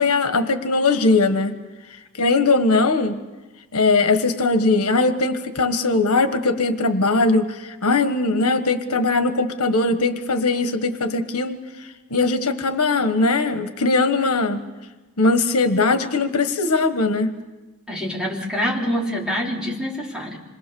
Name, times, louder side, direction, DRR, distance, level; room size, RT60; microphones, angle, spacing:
voice 1, 0.0-1.6 2.2-3.2 3.7-11.6 12.1-14.6 15.2-17.3, left 3 dB, 85° left, 9 dB, 1.4 m, -20 dB
voice 2, 17.9-20.4, equal, 5° right, -4 dB, 3.9 m, -25 dB
27.0 x 22.5 x 7.0 m, 1.2 s
head